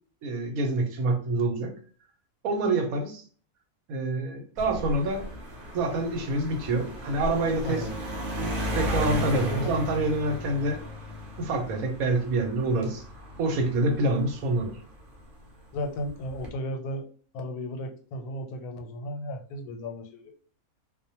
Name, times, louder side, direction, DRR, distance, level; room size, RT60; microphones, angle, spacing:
voice 1, 0.2-1.7 2.4-3.2 3.9-5.3 5.7-7.9 8.4-10.8 11.4-13.0 13.4-14.8, right 2 dB, 75° right, 4 dB, 1.0 m, -27 dB
sound 1, 4.6-15.3 16.1-16.5, equal, 50° right, 0.7 m, -35 dB
voice 2, 9.5-9.8 15.7-17.0 17.3-20.3, equal, 90° left, 4 dB, 1.1 m, -34 dB
2.4 x 2.1 x 2.7 m, 0.42 s
omnidirectional pair, 1.6 m